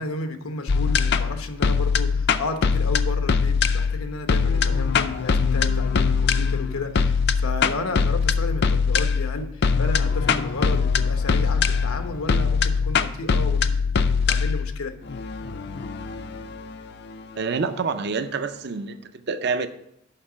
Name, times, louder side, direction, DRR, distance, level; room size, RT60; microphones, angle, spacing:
voice 1, 0.0-13.7 14.0-14.9, left 2 dB, 90° left, 7 dB, 1.0 m, -33 dB
sound 1, 0.7-17.8, left 5 dB, 50° left, 0.4 m, -22 dB
voice 2, 17.4-19.7, right 5 dB, 50° right, 11 dB, 0.5 m, -27 dB
6.7 x 5.8 x 7.2 m, 0.78 s
head